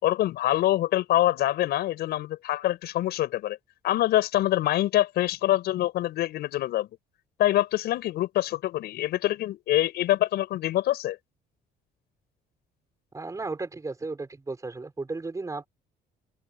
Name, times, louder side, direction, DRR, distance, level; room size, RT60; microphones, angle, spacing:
voice 1, 0.0-3.6 3.8-6.9 7.4-11.2, left 14 dB, 75° left, 6.1 m, -25 dB
voice 2, 13.1-15.7, right 3 dB, 20° right, 6.3 m, -34 dB
cardioid pair, 110°, 17 cm